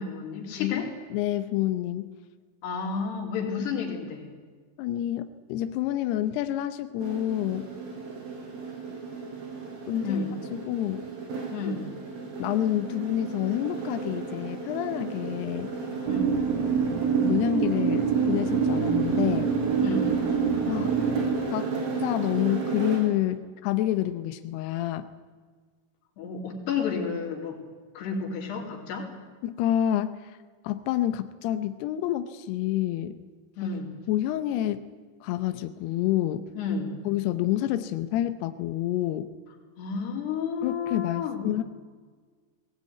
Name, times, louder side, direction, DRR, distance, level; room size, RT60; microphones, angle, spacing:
voice 1, 0.0-0.9 2.6-4.3 10.0-10.3 11.5-11.9 16.1-16.3 19.8-20.2 26.2-27.6 27.9-29.1 33.6-33.9 36.6-37.0 39.8-41.5, left 5 dB, 60° left, 0 dB, 5.0 m, -31 dB
voice 2, 0.6-2.1 4.8-7.7 9.9-11.0 12.4-15.7 17.2-19.5 20.7-21.0 21.5-21.7 22.0-25.1 29.4-30.4 30.6-33.2 33.6-33.7 34.1-34.9 35.2-36.5 37.1-39.3 40.6-41.6, left 13 dB, 80° left, 10 dB, 2.4 m, -28 dB
sound 1, 7.0-23.2, right 4 dB, 85° right, 6.8 m, -34 dB
sound 2, 16.0-21.3, right 6 dB, 60° right, 1.6 m, -25 dB
18.5 x 18.5 x 9.4 m, 1.5 s
omnidirectional pair, 5.6 m